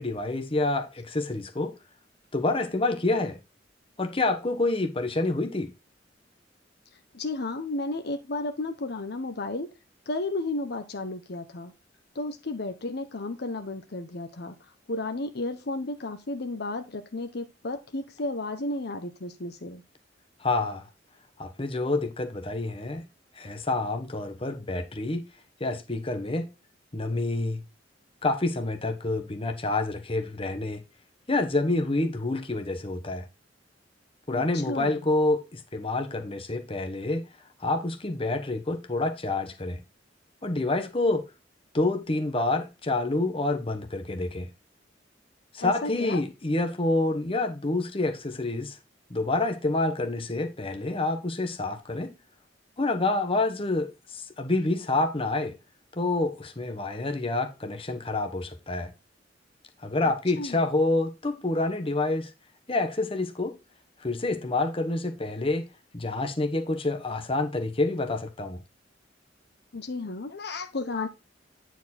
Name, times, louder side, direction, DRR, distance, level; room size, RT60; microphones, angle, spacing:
voice 1, 0.0-1.8 2.3-3.4 4.0-5.7 20.4-20.9 21.4-23.0 23.4-25.2 25.6-26.5 26.9-27.6 28.2-30.8 31.3-33.3 34.3-37.2 37.6-39.8 40.4-41.3 41.7-44.5 45.5-48.8 49.1-52.1 52.8-55.6 56.0-58.9 59.8-62.3 62.7-63.6 64.0-65.7 65.9-68.6, left 2 dB, 30° left, 1.1 m, -28 dB
voice 2, 7.1-9.7 10.1-11.7 12.1-14.5 14.9-19.8 34.3-35.0 45.6-46.2 60.0-60.6 69.7-71.1, left 2 dB, 60° left, 0.9 m, -33 dB
9.2 x 4.6 x 4.1 m
head